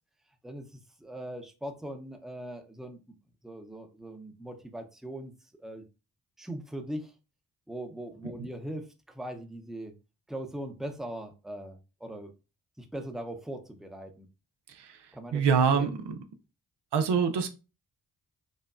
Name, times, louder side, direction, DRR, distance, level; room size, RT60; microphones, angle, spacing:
voice 1, 1.0-3.0 3.4-5.3 5.6-5.8 6.4-7.1 7.7-9.9 10.3-12.3 12.8-14.3 15.1-15.5 15.7-15.9, right 1 dB, ahead, 0.6 m, -40 dB
voice 2, 15.3-15.9 16.9-17.5, right 6 dB, 90° right, 0.6 m, -23 dB
5.2 x 2.2 x 2.5 m
cardioid pair, 55°, 40 cm